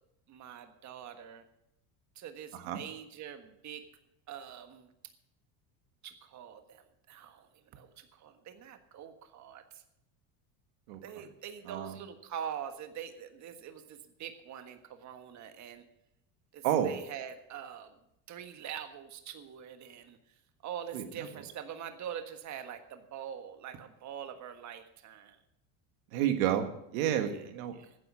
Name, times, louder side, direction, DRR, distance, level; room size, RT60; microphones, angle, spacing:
voice 1, 0.3-1.4 2.1-3.8 4.3-4.9 6.0-9.8 11.0-15.8 16.5-17.9 18.3-25.4 27.3-28.0, right 9 dB, 45° right, 7 dB, 1.5 m, -44 dB
voice 2, 11.7-12.0 16.6-16.9 20.9-21.0 26.1-27.8, right 10 dB, 85° right, 7 dB, 1.7 m, -30 dB
14.5 x 9.9 x 6.2 m, 0.80 s
supercardioid pair, 120°, 40 cm